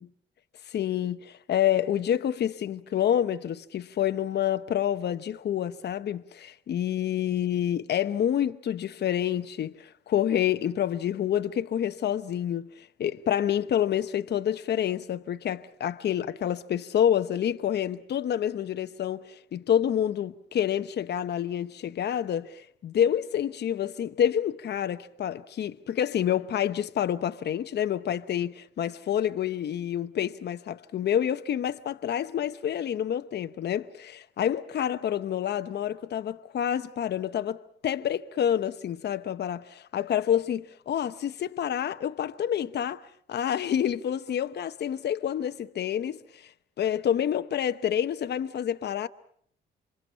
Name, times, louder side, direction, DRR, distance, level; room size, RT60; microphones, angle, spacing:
voice 1, 0.7-43.0 43.3-46.5 46.8-49.1, left 10 dB, 60° left, 0.9 m, -28 dB
27.5 x 24.5 x 5.7 m
cardioid pair, 90°, 20 cm